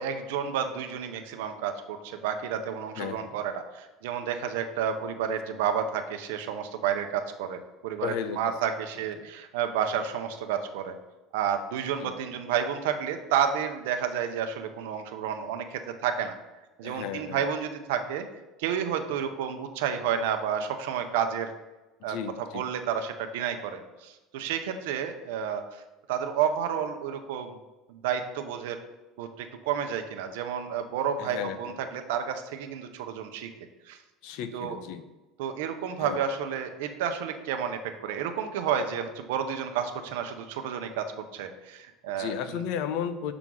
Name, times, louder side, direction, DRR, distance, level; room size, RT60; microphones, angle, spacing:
voice 1, 0.0-10.9 11.3-16.3 16.8-18.2 18.6-21.5 22.0-22.2 22.5-25.8 26.1-27.6 27.9-28.8 29.2-33.5 33.9-34.0 34.5-34.8 35.4-41.1 41.3-42.3, right 8 dB, 90° right, 7 dB, 0.7 m, -30 dB
voice 2, 3.0-3.4 8.0-8.5 9.2-9.3 12.0-12.1 16.8-17.4 22.0-22.7 31.2-31.8 34.2-35.0 36.0-36.2 42.2-43.3, left 8 dB, 70° left, 11 dB, 0.6 m, -34 dB
5.9 x 3.8 x 6.1 m, 1.1 s
cardioid pair, 145°, 0 cm